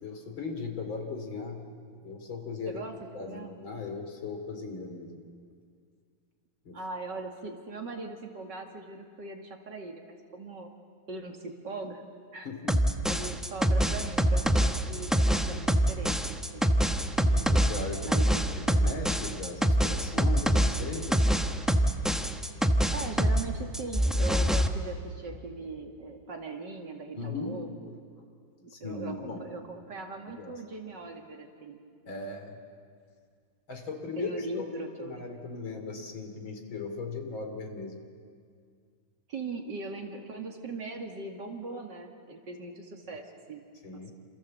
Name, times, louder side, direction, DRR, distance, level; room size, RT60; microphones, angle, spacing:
voice 1, 0.0-1.7 2.0-2.8 3.1-5.2 6.7-6.8 12.5-13.0 17.3-18.2 18.6-21.3 27.1-27.7 28.7-29.5 30.3-30.5 32.1-32.6 33.7-38.0 43.8-44.1, left 4 dB, 65° left, 5 dB, 3.6 m, -38 dB
voice 2, 2.7-3.5 6.7-10.7 11.1-12.0 12.3-12.5 13.1-16.7 18.0-18.5 22.9-27.9 28.6-31.8 34.2-35.2 39.3-43.7, right 3 dB, 55° right, 3 dB, 2.8 m, -40 dB
sound 1, 12.7-23.5 23.7-24.7, equal, ahead, 0.3 m, -25 dB
28.0 x 27.5 x 7.7 m, 2.1 s
omnidirectional pair, 2.3 m